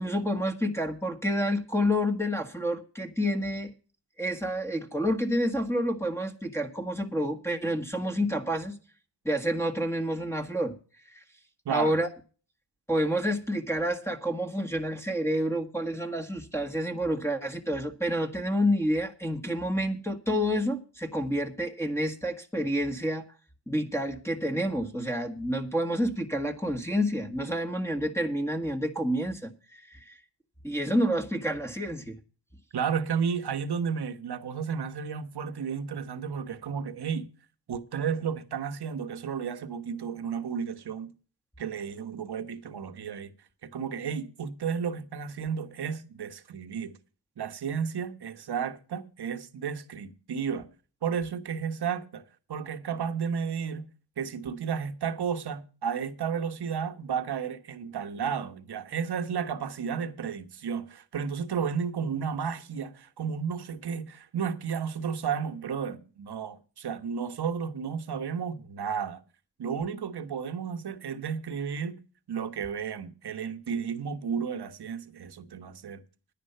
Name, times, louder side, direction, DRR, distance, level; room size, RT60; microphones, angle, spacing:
voice 1, 0.0-3.7 4.2-8.8 9.2-10.7 11.1-11.2 11.7-12.1 12.9-23.3 23.7-30.2 30.6-32.2, equal, 5° left, 1.6 m, -29 dB
voice 2, 11.6-12.0 32.7-37.3 37.7-41.1 41.6-43.3 43.6-46.9 47.4-50.7 51.0-52.2 52.5-53.9 54.2-69.2 69.6-71.9 72.3-76.0, right 7 dB, 60° right, 1.3 m, -32 dB
10.5 x 10.0 x 5.6 m
cardioid pair, 65°, 44 cm